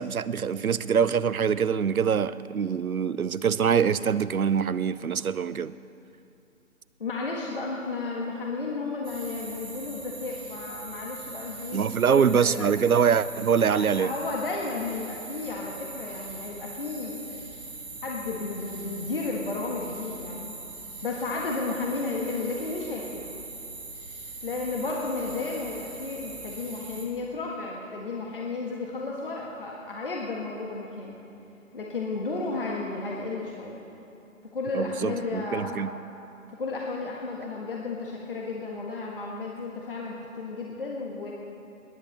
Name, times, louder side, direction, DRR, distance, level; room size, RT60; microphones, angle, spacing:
voice 1, 0.0-5.7 11.7-14.1 34.7-35.9, right 7 dB, 85° right, 17 dB, 0.7 m, -24 dB
voice 2, 7.0-12.7 13.7-17.4 18.0-20.5 21.0-23.3 24.4-31.2 31.7-33.8 34.5-35.9 36.5-41.3, left 3 dB, 40° left, -2 dB, 1.6 m, -33 dB
sound 1, 9.0-27.1, right 3 dB, 45° right, 4.7 m, -41 dB
17.5 x 11.0 x 6.6 m, 2.8 s
figure-of-eight pair, 160°, 42 cm